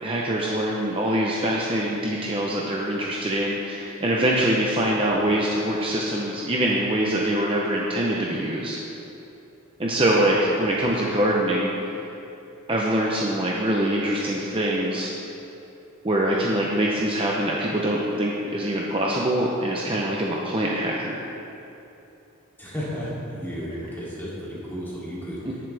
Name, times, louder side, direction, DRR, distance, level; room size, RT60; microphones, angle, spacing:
voice 1, 0.0-8.8 9.8-11.9 12.7-15.1 16.0-21.2, right 1 dB, 25° right, -3 dB, 0.8 m, -24 dB
voice 2, 10.2-10.8 22.6-25.6, equal, 10° left, -8 dB, 2.8 m, -34 dB
18.0 x 7.3 x 3.5 m, 2.9 s
head